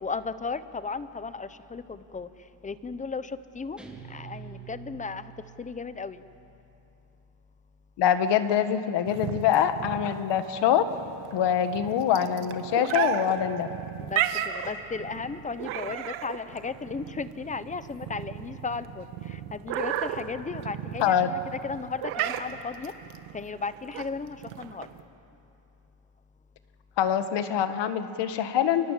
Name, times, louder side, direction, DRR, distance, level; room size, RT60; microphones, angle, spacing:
voice 1, 0.0-2.3 2.6-3.8 4.1-5.3 5.6-6.2 14.0-21.1 21.6-22.9 23.3-24.9, left 4 dB, 15° left, 13 dB, 0.7 m, -35 dB
Guitar, 3.8-6.4, right 7 dB, ahead, 3.0 m, -46 dB
voice 2, 8.0-10.9 11.3-13.7 21.0-21.3 27.0-28.9, left 9 dB, 60° left, 10 dB, 1.7 m, -24 dB
sound 1, 9.1-25.0, right 11 dB, 80° right, 1.6 m, -34 dB
30.0 x 24.0 x 7.5 m, 2.8 s
cardioid pair, 140°, 47 cm